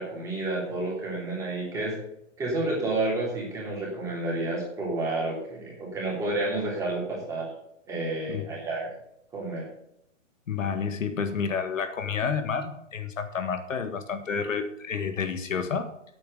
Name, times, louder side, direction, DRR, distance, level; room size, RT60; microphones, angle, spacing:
voice 1, 0.0-2.0 2.4-7.5 7.9-8.9 9.3-9.6, right 2 dB, 10° right, -4 dB, 3.2 m, -30 dB
voice 2, 10.5-15.9, left 6 dB, 80° left, 8 dB, 1.8 m, -30 dB
9.7 x 8.5 x 6.6 m, 0.78 s
hypercardioid pair, 165°, 38 cm